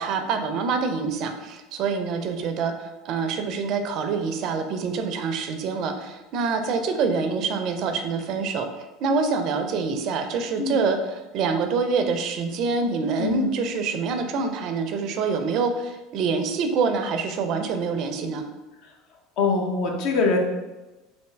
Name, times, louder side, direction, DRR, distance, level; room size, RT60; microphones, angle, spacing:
voice 1, 0.0-8.7 9.0-11.0 11.3-18.4, right 4 dB, 55° right, 6 dB, 0.4 m, -26 dB
voice 2, 13.2-13.5 18.8-18.9 19.4-20.4, left 4 dB, 60° left, 1 dB, 0.7 m, -23 dB
3.4 x 2.6 x 3.2 m, 1.1 s
hypercardioid pair, 80°, 0 cm